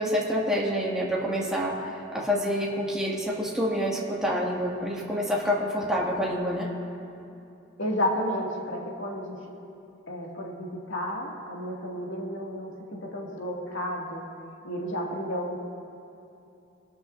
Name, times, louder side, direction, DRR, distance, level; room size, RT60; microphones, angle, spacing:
voice 1, 0.0-1.7 2.1-6.7, equal, 5° right, -5 dB, 2.0 m, -27 dB
voice 2, 7.8-9.4 10.1-14.2 14.6-15.6, equal, 90° left, -2 dB, 2.1 m, -32 dB
22.5 x 12.0 x 2.6 m, 2.8 s
head